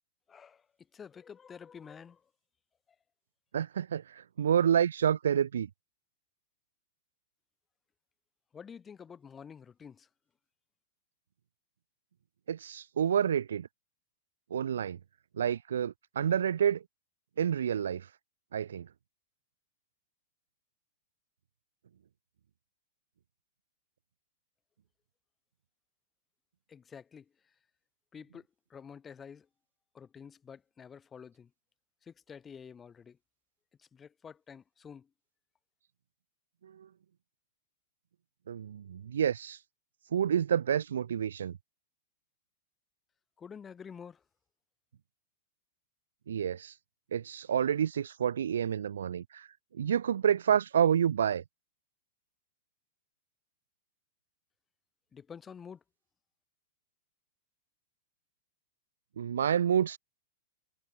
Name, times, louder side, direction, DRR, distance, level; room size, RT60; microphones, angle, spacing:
voice 1, 0.3-0.7 0.9-2.3 8.5-10.1 26.7-27.5 28.1-29.5 29.9-31.5 32.0-33.2 33.8-35.1 43.4-44.2 55.1-55.8, left 7 dB, 20° left, 2.6 m, -49 dB
voice 2, 3.5-5.7 12.5-13.7 14.5-15.0 15.4-16.8 17.4-18.1 18.5-18.9 36.6-36.9 38.5-39.6 40.1-41.6 46.3-46.7 47.1-49.5 49.7-51.4 59.2-60.0, right 8 dB, 75° right, 0.3 m, -29 dB
hypercardioid pair, 110°, 0 cm